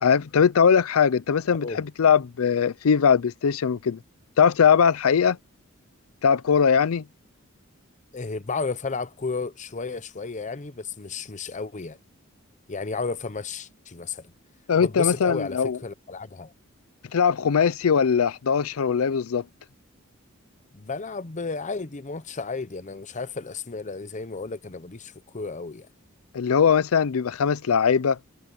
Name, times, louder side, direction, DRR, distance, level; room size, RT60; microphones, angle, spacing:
voice 1, 0.0-4.0 4.4-5.4 6.2-7.0 14.7-15.8 17.1-19.4 26.3-28.2, left 6 dB, 85° left, 0.5 m, -20 dB
voice 2, 8.1-12.0 12.7-14.3 14.8-16.5 20.7-25.9, left 4 dB, 35° left, 0.8 m, -33 dB
head